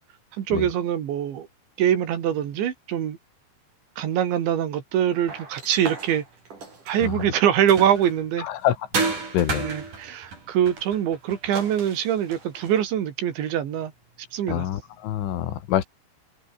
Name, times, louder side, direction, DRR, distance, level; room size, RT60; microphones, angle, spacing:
voice 1, 0.3-1.5 1.8-3.2 4.0-6.2 6.9-8.5 9.6-13.9 14.3-14.7, right 10 dB, 75° right, 4.8 m, -24 dB
sound 1, 5.3-8.3 8.9-12.8, right 4 dB, 45° right, 8.0 m, -33 dB
voice 2, 8.4-8.8 9.0-9.7 14.5-15.8, left 12 dB, 90° left, 4.6 m, -26 dB
omnidirectional pair, 5.4 m